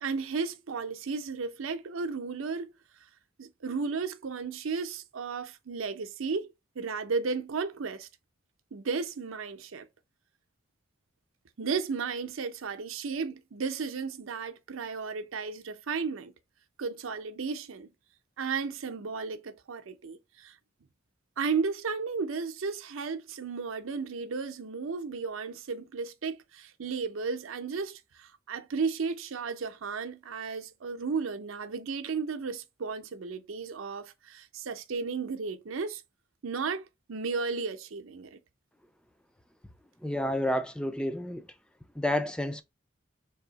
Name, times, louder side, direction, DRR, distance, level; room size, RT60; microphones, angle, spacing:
voice 1, 0.0-2.7 3.4-8.1 8.7-9.9 11.6-16.3 16.8-17.9 18.4-20.6 21.4-36.0 36.4-38.4, right 5 dB, 90° right, 0.6 m, -34 dB
voice 2, 40.0-41.4 42.0-42.6, left 1 dB, 5° left, 0.3 m, -30 dB
3.5 x 2.7 x 3.9 m
head